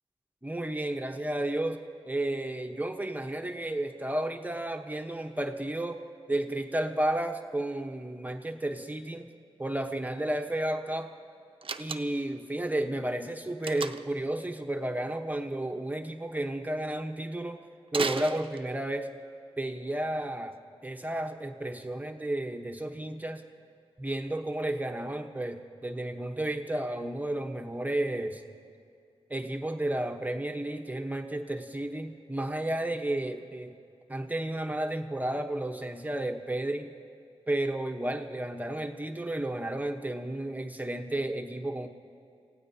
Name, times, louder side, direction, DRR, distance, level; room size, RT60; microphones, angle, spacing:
voice 1, 0.4-6.0 6.3-9.3 9.6-11.1 11.8-17.6 17.9-19.1 19.6-23.4 24.0-28.4 29.3-33.7 34.1-36.9 37.5-41.9, right 1 dB, 15° right, 5 dB, 1.0 m, -32 dB
Slam, 11.6-12.4 13.6-14.2 17.9-19.0, right 5 dB, 60° right, 0.6 m, -35 dB
28.0 x 16.5 x 2.8 m, 2.4 s
cardioid pair, 55°, 10 cm